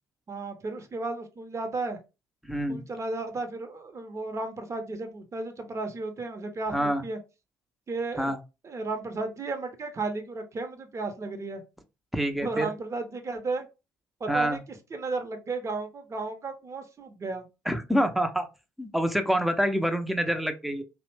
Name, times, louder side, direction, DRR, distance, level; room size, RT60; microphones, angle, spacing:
voice 1, 0.3-2.0 2.7-7.2 7.9-8.3 8.6-11.6 12.4-13.7 14.2-14.6 14.9-17.5, right 3 dB, 30° right, 6 dB, 0.8 m, -34 dB
voice 2, 2.4-2.8 6.7-7.0 8.2-8.4 12.1-12.7 14.3-14.6 17.7-18.5 18.8-20.8, equal, ahead, 7 dB, 0.6 m, -26 dB
2.7 x 2.1 x 3.2 m, 0.28 s
hypercardioid pair, 55°, 9 cm